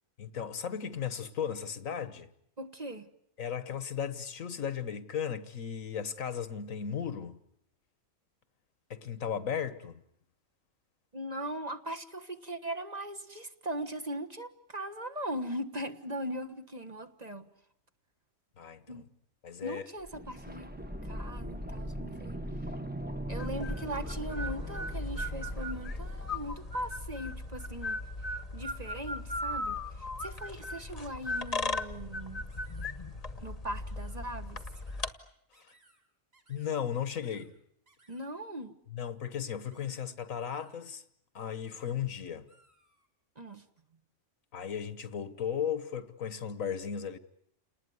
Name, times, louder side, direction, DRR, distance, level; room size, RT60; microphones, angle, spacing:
voice 1, 0.2-2.3 3.4-7.4 8.9-10.0 18.6-19.0 19.4-19.9 35.6-35.7 36.5-37.6 38.9-41.0 41.3-42.5 44.5-47.2, left 8 dB, 80° left, 1.7 m, -36 dB
voice 2, 2.6-3.1 11.1-17.5 18.9-19.0 19.6-20.7 21.0-22.4 23.3-28.0 28.5-32.5 33.4-34.6 38.1-38.7 39.8-40.1 43.4-43.6, right 1 dB, 30° right, 1.4 m, -39 dB
sound 1, 20.0-27.8 28.1-28.2, equal, 10° right, 1.1 m, -39 dB
sound 2, 23.4-35.1, left 2 dB, 30° left, 1.2 m, -38 dB
sound 3, 30.6-31.0 31.3-31.7 32.5-32.9 33.9-34.2 34.7-35.2 35.5-36.0 36.3-36.7 37.1-37.5 37.9-38.3 39.7-39.9 40.4-40.8 41.7-42.0 42.5-43.1, right 2 dB, 45° right, 6.6 m, -65 dB
29.5 x 19.5 x 9.5 m
omnidirectional pair, 1.4 m